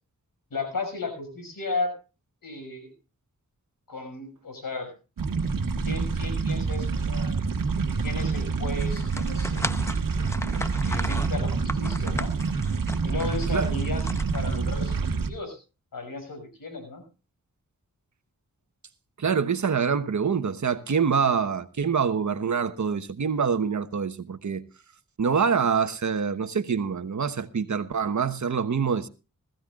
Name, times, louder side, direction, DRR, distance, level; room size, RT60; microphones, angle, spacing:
voice 1, 0.5-1.9 2.4-2.9 3.9-4.9 5.8-7.3 8.0-9.9 10.5-12.3 13.0-14.1 14.3-15.0 15.3-15.6 15.9-17.0, left 3 dB, 90° left, 6.4 m, -34 dB
sound 1, 5.2-15.3, right 4 dB, 80° right, 1.6 m, -27 dB
sound 2, 8.8-14.9, left 1 dB, 10° left, 0.9 m, -36 dB
voice 2, 19.2-24.6 25.2-29.1, right 6 dB, 60° right, 1.2 m, -25 dB
19.5 x 15.5 x 2.4 m
wide cardioid pair, 60°, 33 cm